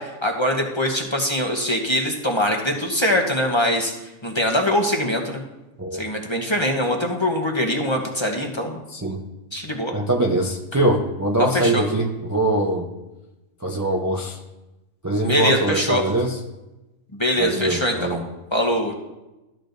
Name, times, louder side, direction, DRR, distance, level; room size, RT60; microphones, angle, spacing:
voice 1, 0.0-3.9 4.2-5.4 5.9-8.8 9.5-9.9 11.5-11.8 15.2-16.0 17.1-18.2 18.5-18.9, left 1 dB, 25° left, 1 dB, 0.9 m, -22 dB
voice 2, 8.9-9.2 9.9-12.9 13.6-14.4 15.0-16.4 17.4-18.2, right 1 dB, 20° right, 0 dB, 0.5 m, -22 dB
13.5 x 8.4 x 2.6 m, 1.0 s
omnidirectional pair, 1.5 m